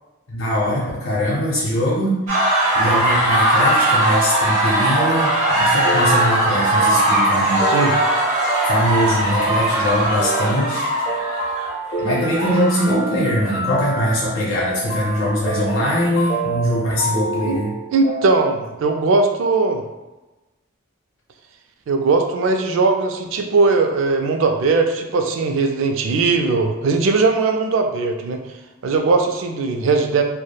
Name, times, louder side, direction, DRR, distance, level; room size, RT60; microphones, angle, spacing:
voice 1, 0.3-2.1 2.4-7.7 8.6-10.9 12.0-17.7, equal, 85° left, -6 dB, 0.6 m, -22 dB
sound 1, 2.3-13.0, right 1 dB, 35° right, 0.6 m, -19 dB
sound 2, 4.0-18.4, right 2 dB, 40° left, 0.6 m, -27 dB
voice 2, 7.6-7.9 17.4-17.6 17.9-19.8 21.9-28.4 28.8-30.2, right 3 dB, 70° right, 4 dB, 0.3 m, -19 dB
3.1 x 2.0 x 2.2 m, 1.1 s
head